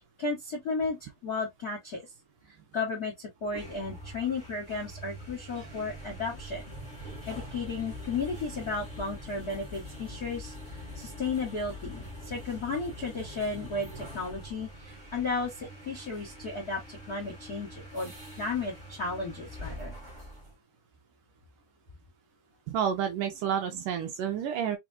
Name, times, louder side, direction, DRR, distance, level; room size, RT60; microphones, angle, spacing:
voice 1, 0.2-2.1 2.7-6.6 7.3-10.5 10.9-18.1 18.4-19.9, left 4 dB, 85° left, 0.8 m, -34 dB
sound 1, 3.4-20.5, equal, 55° right, 0.8 m, -44 dB
voice 2, 22.7-24.8, right 8 dB, 75° right, 2.1 m, -30 dB
6.0 x 2.2 x 2.5 m
omnidirectional pair, 4.3 m